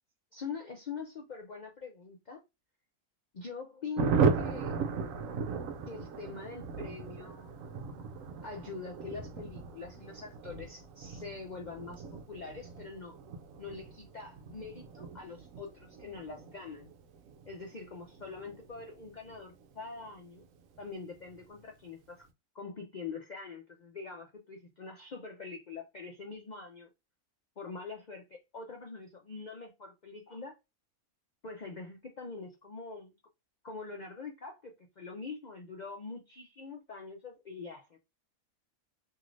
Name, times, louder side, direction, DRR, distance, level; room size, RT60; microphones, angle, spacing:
voice 1, 0.3-2.4 3.3-4.8 5.9-7.6 8.4-13.2 13.6-16.9 17.5-20.5 20.8-22.3 22.5-26.9 27.6-30.6 31.4-33.1 33.6-38.0, left 4 dB, 90° left, 0.4 m, -44 dB
Thunder, 4.0-20.1 20.4-20.5 20.7-20.9 21.1-21.6, right 5 dB, 70° right, 0.9 m, -36 dB
3.0 x 2.8 x 2.5 m
omnidirectional pair, 1.6 m